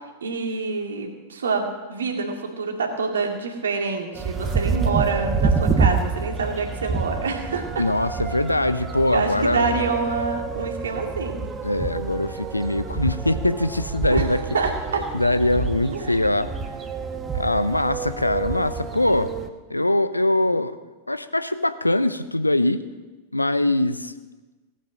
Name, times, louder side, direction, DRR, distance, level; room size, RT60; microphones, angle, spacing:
voice 1, 0.2-7.8 9.1-11.4 14.1-14.3 14.5-15.1 15.9-16.1, right 4 dB, 70° right, 3 dB, 2.2 m, -26 dB
sound 1, 4.2-19.5, right 4 dB, 20° right, 1.1 m, -28 dB
voice 2, 7.8-9.8 11.6-14.5 15.1-16.5 17.3-19.3 19.7-20.8 21.1-22.8 23.3-24.1, left 1 dB, 85° left, 13 dB, 0.7 m, -22 dB
17.5 x 8.8 x 6.3 m, 1.2 s
figure-of-eight pair, 90°, 0 cm